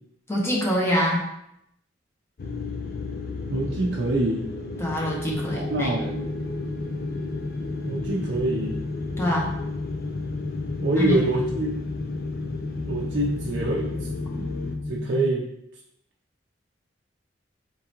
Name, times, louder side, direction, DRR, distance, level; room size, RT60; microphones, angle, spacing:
voice 1, 0.3-1.2 4.8-5.9 9.2-9.5 11.0-11.2, equal, 15° left, -4 dB, 1.0 m, -25 dB
sound 1, 2.4-14.8, left 3 dB, 60° left, 0.5 m, -35 dB
voice 2, 3.5-4.5 5.5-6.3 7.9-8.8 10.8-11.7 12.9-13.9 14.4-14.5 14.9-15.5, right 2 dB, 75° right, -3 dB, 0.6 m, -25 dB
sound 2, 5.3-15.3, left 2 dB, 5° right, 0.7 m, -33 dB
4.4 x 3.7 x 2.9 m, 0.79 s
head